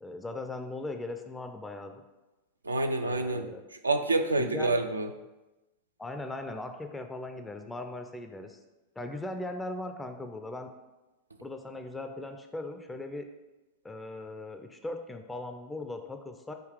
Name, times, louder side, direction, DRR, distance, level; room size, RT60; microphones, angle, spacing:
voice 1, 0.0-2.0 3.0-3.6 4.4-4.7 6.0-8.6 9.0-10.7 11.4-13.3 13.8-16.5, left 2 dB, 10° left, 6 dB, 0.3 m, -39 dB
voice 2, 2.6-3.5 3.8-5.1, right 2 dB, 80° right, 7 dB, 0.3 m, -27 dB
3.7 x 2.8 x 4.6 m, 1.0 s
figure-of-eight pair, 90°, 0 cm